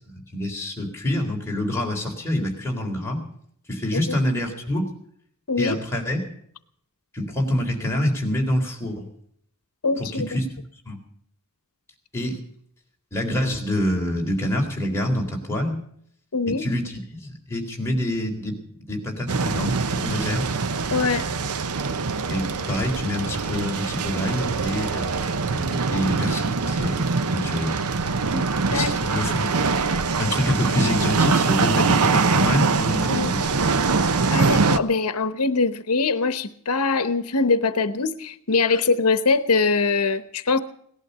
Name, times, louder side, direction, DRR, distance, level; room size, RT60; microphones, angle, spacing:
voice 1, 0.1-3.2 3.7-4.9 5.6-6.2 7.1-9.1 10.0-10.5 10.9-11.0 12.1-12.4 13.1-15.8 16.6-20.4 22.3-27.0 27.3-27.8 28.7-29.5 30.2-33.6 38.7-38.8, left 1 dB, 10° left, -1 dB, 3.8 m, -26 dB
voice 2, 9.8-10.3 16.3-16.6 20.9-21.2 28.3-28.9 33.1-33.3 34.3-40.6, left 4 dB, 85° left, 12 dB, 0.9 m, -23 dB
sound 1, 19.3-34.8, right 4 dB, 85° right, 0.8 m, -23 dB
18.0 x 12.0 x 6.8 m, 0.67 s
head